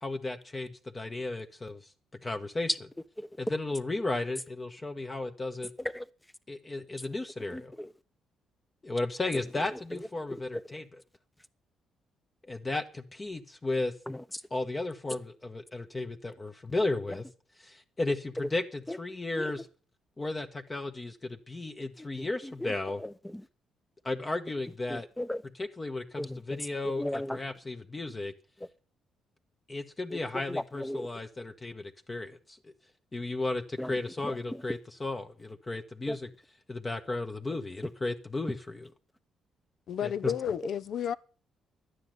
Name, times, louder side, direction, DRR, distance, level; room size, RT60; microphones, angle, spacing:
voice 1, 0.0-1.9 2.2-2.7 3.4-5.7 6.5-7.7 8.8-10.8 12.5-13.9 14.5-17.2 17.6-19.6 20.2-23.0 24.0-25.1 25.6-28.3 29.7-32.6 33.1-36.3 36.7-38.6 40.0-40.3, left 2 dB, 25° left, 1.4 m, -34 dB
voice 2, 7.5-7.9 9.3-9.4 9.7-10.4 14.1-14.4 17.1-17.2 18.9-19.0 19.4-19.5 22.0-22.7 23.0-23.5 24.9-25.4 26.2-26.6 27.0-27.4 28.6-28.7 30.1-30.2 30.5-31.1 33.8-34.6 36.1-36.2 37.5-37.6, left 1 dB, 10° left, 0.9 m, -37 dB
voice 3, 39.9-41.1, left 8 dB, 65° left, 0.8 m, -31 dB
12.0 x 9.7 x 7.9 m
cardioid pair, 90°, 0 cm